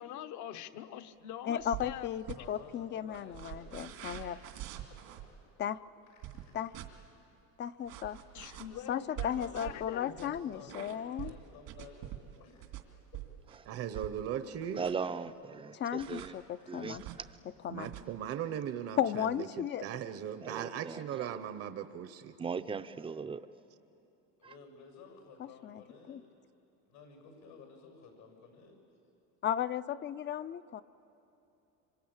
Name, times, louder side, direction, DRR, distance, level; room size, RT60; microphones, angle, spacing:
voice 1, 0.0-2.1 8.3-10.4, left 10 dB, 60° left, 1.1 m, -44 dB
voice 2, 1.5-4.4 5.6-5.8 6.5-6.7 7.6-8.2 8.9-11.3 15.7-17.0 17.6-17.9 19.0-19.8 25.4-25.8 26.1-26.2 29.4-30.8, left 10 dB, 35° left, 0.5 m, -35 dB
sound 1, 1.6-2.4 3.1-5.3 6.2-6.9 7.9-14.3 14.6-15.1 16.0-16.3 16.9-17.2 17.8-18.0, right 14 dB, 85° right, 2.6 m, -44 dB
voice 3, 2.4-4.1 4.9-5.2 6.1-6.8 8.4-8.7 9.3-9.8 10.3-12.8 13.1-13.2 16.5-17.1 24.4-26.3 26.8-28.8, left 5 dB, 90° left, 6.7 m, -55 dB
voice 4, 13.6-14.8 17.7-22.4, right 9 dB, 45° right, 0.8 m, -38 dB
voice 5, 14.8-16.3 16.7-17.0 20.4-21.0 22.4-23.4, right 5 dB, 15° right, 0.5 m, -38 dB
26.0 x 25.5 x 8.8 m
cardioid pair, 155°, 34 cm